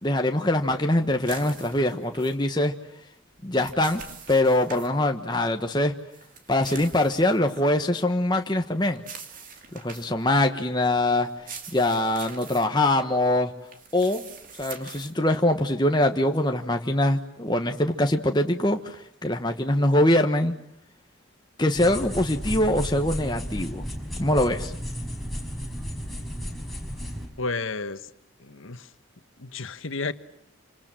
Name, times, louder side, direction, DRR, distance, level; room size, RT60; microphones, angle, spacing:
voice 1, 0.0-2.7 3.4-4.0 4.3-5.9 6.5-9.0 9.7-11.3 11.7-13.5 13.9-14.3 14.6-20.6 21.6-23.8 24.2-24.7, left 1 dB, 20° left, 4 dB, 1.3 m, -23 dB
sound 1, 1.2-2.4 3.3-4.9 6.1-7.7 9.0-10.2 11.3-12.7 13.7-15.1, right 6 dB, 40° right, 2.8 m, -44 dB
sound 2, 21.7-27.2, equal, ahead, 5.4 m, -33 dB
voice 2, 27.4-28.1 28.4-28.9 29.4-30.1, left 3 dB, 75° left, 11 dB, 1.4 m, -32 dB
28.0 x 26.5 x 7.6 m, 0.74 s
head